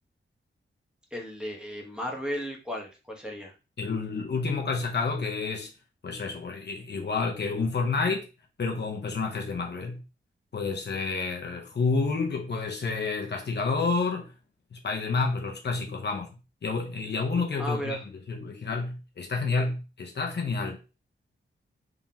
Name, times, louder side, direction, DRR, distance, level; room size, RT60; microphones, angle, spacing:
voice 1, 1.1-3.5 17.6-18.0, equal, 5° right, 1.2 m, -34 dB
voice 2, 3.8-5.7 6.0-8.3 8.6-10.0 10.5-14.3 14.7-16.3 16.6-20.8, left 4 dB, 55° left, 0.9 m, -29 dB
3.7 x 3.5 x 2.8 m
wide cardioid pair, 85°, 21 cm